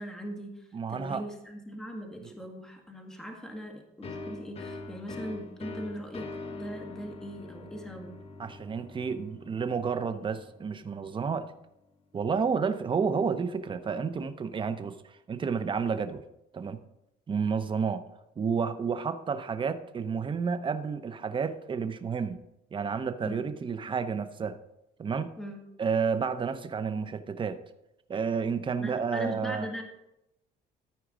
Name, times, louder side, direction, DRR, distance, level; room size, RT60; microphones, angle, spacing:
voice 1, 0.0-8.1 23.3-23.4 25.4-25.6 28.8-29.8, equal, 5° left, 2 dB, 1.7 m, -40 dB
voice 2, 0.7-1.2 2.2-2.3 8.4-11.5 12.1-16.2 16.5-16.8 17.3-18.0 18.4-22.4 22.7-24.6 25.0-25.3 25.8-27.6 28.1-29.7, right 6 dB, 30° right, 10 dB, 0.8 m, -30 dB
sound 1, 4.0-11.5, left 3 dB, 35° left, 1.0 m, -44 dB
13.5 x 4.7 x 5.1 m, 0.86 s
cardioid pair, 110°, 17 cm